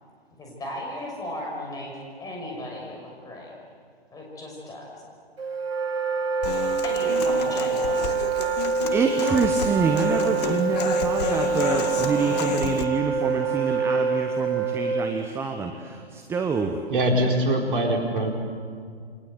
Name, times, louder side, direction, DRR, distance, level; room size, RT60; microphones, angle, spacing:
voice 1, 0.4-3.5 4.1-4.9 6.8-8.3, left 1 dB, 10° left, -1 dB, 6.3 m, -36 dB
Wind instrument woodwind instrument, 5.4-15.3, right 5 dB, 70° right, 2.5 m, -25 dB
Human voice / Acoustic guitar, 6.4-12.8, left 7 dB, 40° left, 2.0 m, -31 dB
voice 2, 8.9-16.8, right 4 dB, 10° right, 5 dB, 1.1 m, -27 dB
voice 3, 16.9-18.3, right 1 dB, 55° right, 1 dB, 4.7 m, -23 dB
28.5 x 23.0 x 8.2 m, 2.1 s
figure-of-eight pair, 125°, 31 cm